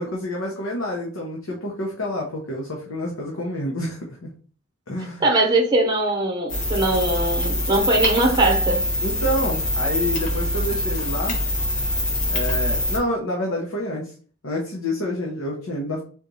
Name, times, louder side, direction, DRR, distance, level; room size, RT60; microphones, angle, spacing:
voice 1, 0.0-4.3 4.9-5.3 9.0-11.4 12.3-14.1 14.4-16.0, left 1 dB, 85° left, 1.1 m, -28 dB
voice 2, 5.2-8.8, right 2 dB, 20° right, 0.9 m, -21 dB
sound 1, 6.5-13.0, left 1 dB, 40° left, 1.1 m, -24 dB
4.1 x 3.0 x 4.0 m
head